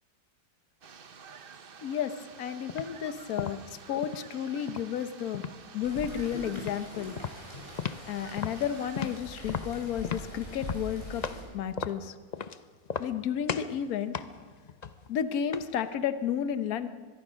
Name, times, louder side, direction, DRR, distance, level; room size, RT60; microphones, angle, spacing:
sound 1, 0.8-9.2, right 6 dB, 40° right, 0.9 m, -50 dB
voice 1, 1.8-2.1 2.4-3.6 3.9-5.4 5.7-7.1 8.1-11.2 11.5-12.1 13.0-14.1 15.1-16.9, left 8 dB, 60° left, 11 dB, 1.4 m, -32 dB
sound 2, 2.7-2.9 3.4-4.3 4.7-5.6 5.9-6.2 6.6-6.8 7.2-8.1 8.4-11.5 11.8-12.6 12.9-13.2 13.5-13.8 14.1-15.8, left 6 dB, 85° left, 0.3 m, -36 dB
Rain, 5.8-11.4, equal, 35° left, 6.3 m, -43 dB
24.0 x 21.5 x 6.3 m, 1.5 s
omnidirectional pair, 1.8 m